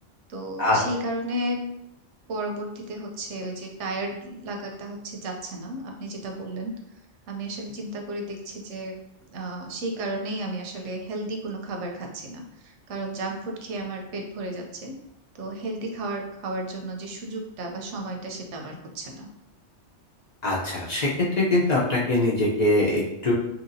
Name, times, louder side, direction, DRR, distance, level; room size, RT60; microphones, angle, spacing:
voice 1, 0.3-1.6 2.3-6.7 7.3-9.0 9.3-15.0 15.3-19.3, right 1 dB, 90° right, 2 dB, 0.9 m, -33 dB
voice 2, 20.4-21.1 21.4-23.3, left 2 dB, 45° left, -6 dB, 0.7 m, -22 dB
2.9 x 2.8 x 2.6 m, 0.85 s
omnidirectional pair, 1.2 m